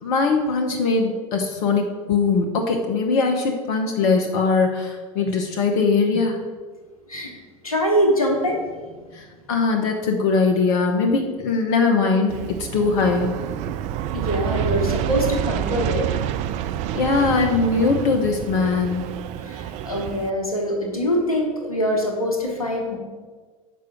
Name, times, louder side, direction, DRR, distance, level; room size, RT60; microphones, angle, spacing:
voice 1, 0.0-6.4 9.1-13.3 16.9-19.0, left 4 dB, 55° left, 3 dB, 0.7 m, -21 dB
voice 2, 7.6-8.6 14.1-16.1 19.4-23.0, equal, 90° left, 1 dB, 1.1 m, -23 dB
Aircraft, 12.3-20.3, right 10 dB, 40° right, 0.4 m, -28 dB
6.1 x 4.8 x 5.7 m, 1.4 s
figure-of-eight pair, 75°, 18 cm